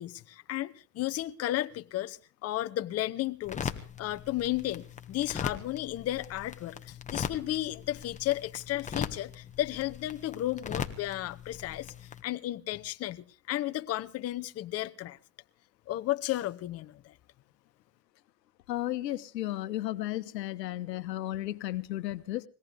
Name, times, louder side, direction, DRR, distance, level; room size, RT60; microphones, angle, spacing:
voice 1, 0.0-3.7 4.0-15.2 15.9-17.1, left 14 dB, 30° left, 0.9 m, -33 dB
sound 1, 3.4-12.2, left 6 dB, 15° left, 1.3 m, -40 dB
voice 2, 18.7-22.4, left 14 dB, 90° left, 1.1 m, -34 dB
21.5 x 17.5 x 3.4 m
supercardioid pair, 120°, 48 cm